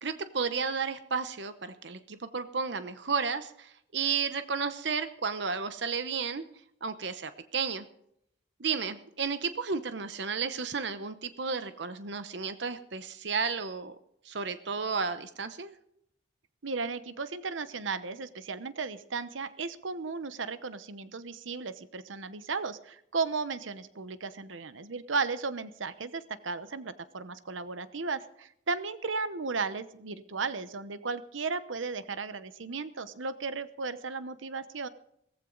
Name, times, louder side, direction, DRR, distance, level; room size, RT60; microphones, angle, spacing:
voice 1, 0.0-6.4 6.8-7.9 8.6-14.0 14.2-15.7, right 5 dB, 65° right, 11 dB, 0.8 m, -32 dB
voice 2, 16.6-34.9, right 4 dB, 90° right, 13 dB, 0.9 m, -35 dB
17.5 x 15.0 x 3.9 m, 0.73 s
head